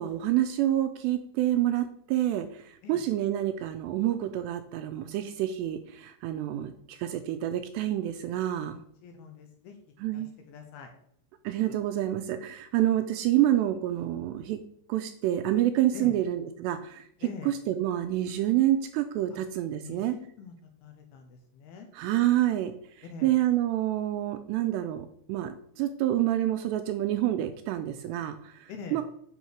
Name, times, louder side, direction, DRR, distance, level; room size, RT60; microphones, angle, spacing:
voice 1, 0.0-8.8 10.0-10.3 11.4-14.6 14.9-20.2 21.9-29.0, right 13 dB, 85° right, 8 dB, 2.6 m, -28 dB
voice 2, 8.7-9.8 10.1-10.9 15.9-16.2 17.2-17.5 19.3-19.4 19.8-20.5 20.8-21.9 23.0-23.4 28.7-29.0, left 5 dB, 75° left, 5 dB, 2.5 m, -44 dB
9.4 x 5.5 x 6.6 m, 0.68 s
omnidirectional pair, 5.4 m